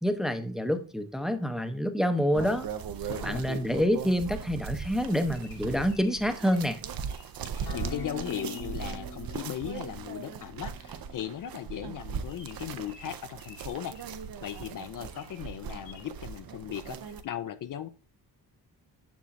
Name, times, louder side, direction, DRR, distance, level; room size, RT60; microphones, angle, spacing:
voice 1, 0.0-2.7 3.2-6.8, equal, ahead, 0.6 m, -27 dB
sound 1, 2.3-17.2, right 7 dB, 60° right, 0.7 m, -39 dB
voice 2, 3.1-3.4 7.4-14.0 14.4-17.9, left 10 dB, 55° left, 0.5 m, -37 dB
Bird vocalization bird call bird song, 4.8-7.3 7.8-8.1 8.4-8.7 10.2-10.4 10.7-10.8 11.1-11.2 11.7-11.8 12.3-14.7 15.1-15.4 15.8-16.1, left 4 dB, 85° left, 3.4 m, -54 dB
Acoustic guitar, 7.7-12.9, equal, 70° left, 2.0 m, -46 dB
7.0 x 6.2 x 2.5 m
cardioid pair, 95°, 40 cm